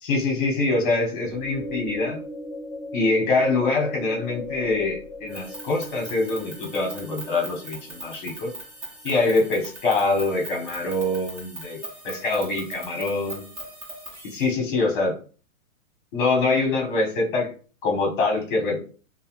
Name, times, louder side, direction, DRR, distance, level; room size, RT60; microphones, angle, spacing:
voice 1, 0.0-2.2 2.9-8.5 9.0-11.8 12.0-13.5 14.2-15.2 16.1-17.5 17.8-18.8, left 3 dB, 35° left, 1 dB, 0.9 m, -24 dB
sound 1, 1.1-8.4, left 1 dB, 10° left, 1.0 m, -38 dB
sound 2, 5.3-14.5, right 2 dB, 25° right, 0.9 m, -40 dB
2.8 x 2.1 x 2.9 m, 0.39 s
hypercardioid pair, 160°, 41 cm